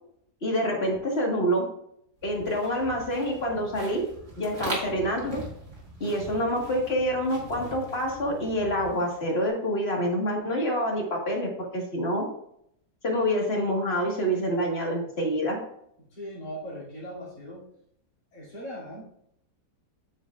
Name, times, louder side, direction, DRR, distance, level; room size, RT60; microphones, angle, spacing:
voice 1, 0.4-1.7 2.2-4.0 4.4-5.4 6.0-12.3 13.0-15.6, equal, 40° left, 0 dB, 1.9 m, -27 dB
sound 1, 2.2-9.5, right 1 dB, 75° right, 3.0 m, -41 dB
voice 2, 16.1-17.6 18.3-19.0, equal, 70° left, -8 dB, 3.4 m, -39 dB
8.6 x 8.5 x 2.5 m, 0.72 s
omnidirectional pair, 1.7 m